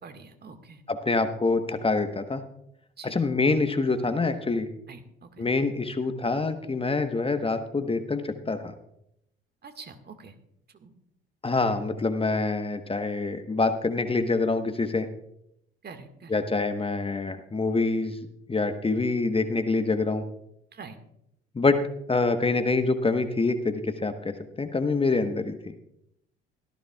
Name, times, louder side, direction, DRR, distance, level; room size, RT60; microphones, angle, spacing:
voice 1, 0.0-0.8 3.0-3.2 4.9-5.5 9.6-10.4 10.7-10.9 15.8-16.4 20.7-21.0, right 5 dB, 35° right, 7 dB, 1.8 m, -45 dB
voice 2, 0.9-2.4 3.0-4.7 5.4-8.7 11.4-15.1 16.3-18.2 18.5-20.2 21.5-21.8 22.1-25.7, left 3 dB, 20° left, 8 dB, 1.2 m, -26 dB
18.0 x 14.0 x 2.4 m, 0.79 s
figure-of-eight pair, 55°, 29 cm